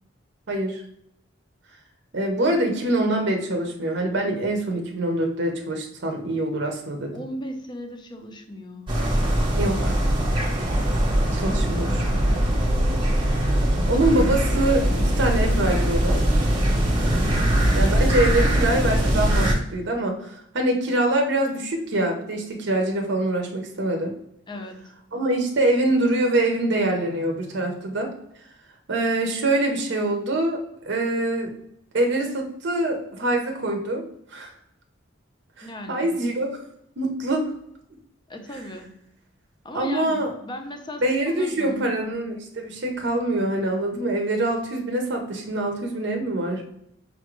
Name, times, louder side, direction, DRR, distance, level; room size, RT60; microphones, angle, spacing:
voice 1, 0.5-0.8 2.1-7.1 9.5-10.0 11.3-11.9 13.9-16.2 17.7-24.1 25.1-28.1 28.9-31.5 31.9-34.0 34.3-34.5 35.6-36.7 37.0-37.5 39.7-40.3 41.0-46.6, right 1 dB, 60° right, 2 dB, 0.7 m, -24 dB
voice 2, 7.1-9.0 11.4-12.3 17.4-17.8 24.5-24.9 35.6-36.2 38.3-39.0 39.6-41.9, left 1 dB, 25° left, 4 dB, 0.5 m, -37 dB
sound 1, 8.9-19.5, right 1 dB, 25° right, 0.9 m, -21 dB
5.3 x 2.5 x 3.0 m, 0.75 s
head